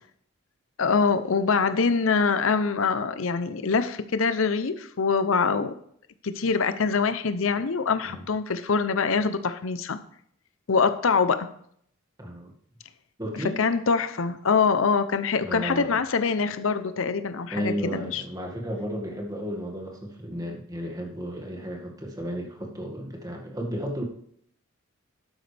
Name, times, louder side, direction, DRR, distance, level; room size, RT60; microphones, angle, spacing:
voice 1, 0.8-5.7 6.2-10.0 10.7-11.5 13.6-18.2, left 5 dB, 70° left, 11 dB, 0.6 m, -24 dB
voice 2, 12.2-12.5 13.2-13.6 15.4-16.0 17.5-24.0, equal, 15° right, 1 dB, 2.0 m, -33 dB
12.0 x 9.2 x 3.4 m, 0.65 s
head